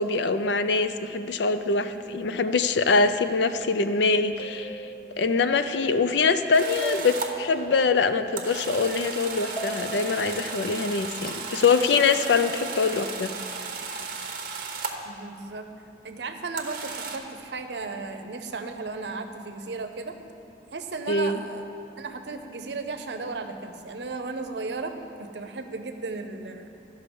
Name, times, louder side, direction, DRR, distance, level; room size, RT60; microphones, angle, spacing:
voice 1, 0.0-4.9 5.2-13.3 21.1-21.4, left 4 dB, 85° left, 10 dB, 0.5 m, -24 dB
sound 1, 4.4-5.2 6.8-7.8 9.6-10.2 11.3-11.5, right 1 dB, 30° left, 1.2 m, -36 dB
sound 2, 6.5-7.3 8.4-15.1 16.6-17.2, right 4 dB, 50° right, 0.8 m, -35 dB
voice 2, 15.0-15.7 16.0-20.2 20.7-21.7 22.0-24.9 25.2-26.7, right 3 dB, 80° right, 7 dB, 0.7 m, -35 dB
13.5 x 5.6 x 5.3 m, 2.7 s
head